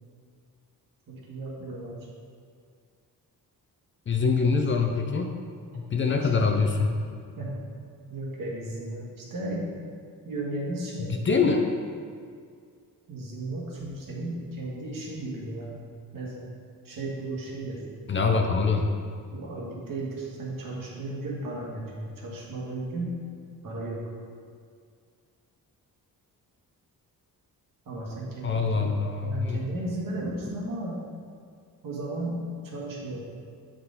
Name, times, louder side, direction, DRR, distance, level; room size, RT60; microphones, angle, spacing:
voice 1, 1.1-2.0 6.2-6.5 7.4-7.6 8.1-9.7 10.2-11.3 13.1-15.8 16.1-16.5 16.8-17.8 18.3-18.4 19.3-23.2 23.6-24.0 27.9-28.9 29.2-31.0 31.8-33.3, right 2 dB, 65° right, -4 dB, 1.6 m, -35 dB
voice 2, 4.1-5.3 5.9-7.0 11.2-11.6 18.1-18.9 28.4-29.6, left 4 dB, 35° left, 3 dB, 0.5 m, -24 dB
7.9 x 3.9 x 3.9 m, 2.2 s
cardioid pair, 125°, 36 cm